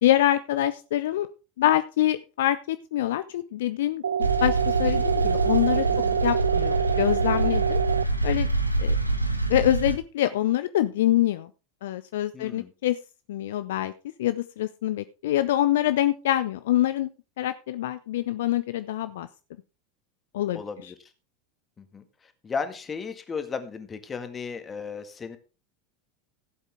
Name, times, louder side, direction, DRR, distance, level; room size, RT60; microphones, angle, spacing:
voice 1, 0.0-1.3 1.6-5.9 6.2-7.8 8.2-8.5 8.8-8.9 9.5-11.5 11.8-13.0 13.3-13.9 14.2-17.1 17.4-19.3 20.3-20.6, left 13 dB, 60° left, 12 dB, 0.5 m, -25 dB
sound 1, 4.0-8.0, right 8 dB, 70° right, 0.5 m, -26 dB
sound 2, 4.2-10.0, right 2 dB, 90° right, 0.9 m, -26 dB
voice 2, 5.9-6.2 12.3-12.7 20.5-21.1 21.8-25.4, left 5 dB, 20° left, 8 dB, 1.8 m, -35 dB
15.5 x 8.1 x 3.5 m, 0.32 s
figure-of-eight pair, 80°, 0 cm